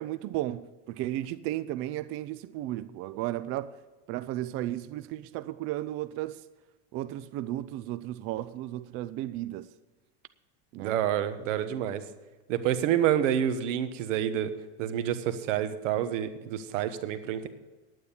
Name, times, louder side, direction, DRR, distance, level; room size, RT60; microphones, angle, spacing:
voice 1, 0.0-3.8 4.1-6.5 6.9-9.7 10.7-11.0, right 14 dB, 40° right, 0.4 m, -34 dB
voice 2, 10.8-12.0 12.5-14.5 14.8-17.5, right 10 dB, 85° right, 1.2 m, -28 dB
9.9 x 9.4 x 6.9 m
supercardioid pair, 145°, 36 cm